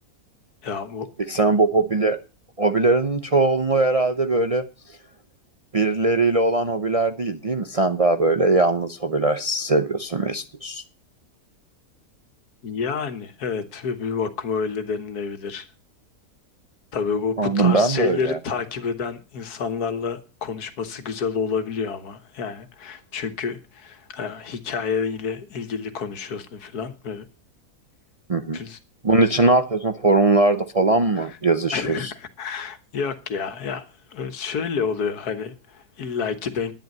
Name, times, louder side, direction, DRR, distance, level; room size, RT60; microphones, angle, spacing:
voice 1, 0.6-1.1 12.6-15.7 16.9-27.3 28.5-28.8 31.2-31.4 31.7-36.7, left 5 dB, 85° left, 1.8 m, -29 dB
voice 2, 1.3-2.2 2.6-4.7 5.7-10.8 17.4-18.4 28.3-28.6 29.0-32.1, right 3 dB, 40° right, 0.5 m, -20 dB
10.5 x 10.0 x 5.4 m
omnidirectional pair, 1.6 m